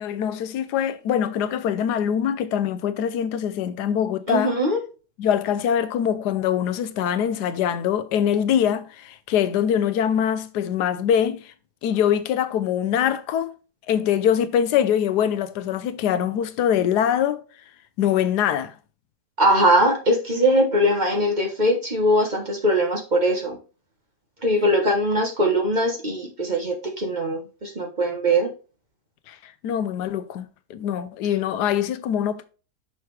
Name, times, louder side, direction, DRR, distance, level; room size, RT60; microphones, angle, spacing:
voice 1, 0.0-4.5 5.2-11.5 11.8-13.5 13.9-17.4 18.0-18.7 29.3-32.5, left 9 dB, 85° left, 1.2 m, -23 dB
voice 2, 4.3-4.8 19.4-23.6 24.4-28.5, equal, 30° right, 1.1 m, -21 dB
5.8 x 5.7 x 3.2 m
omnidirectional pair, 1.7 m